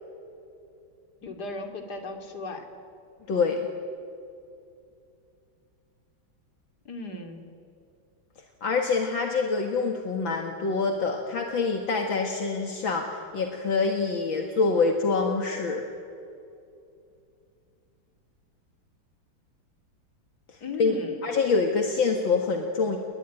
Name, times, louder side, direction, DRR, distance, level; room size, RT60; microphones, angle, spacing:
voice 1, 1.2-2.7 6.8-7.5 20.6-21.3, left 3 dB, 50° left, 5 dB, 3.3 m, -36 dB
voice 2, 3.3-3.6 8.6-15.9 20.5-21.0 21.2-23.0, left 4 dB, 70° left, 3 dB, 2.5 m, -26 dB
30.0 x 21.0 x 9.3 m, 2.5 s
omnidirectional pair, 2.3 m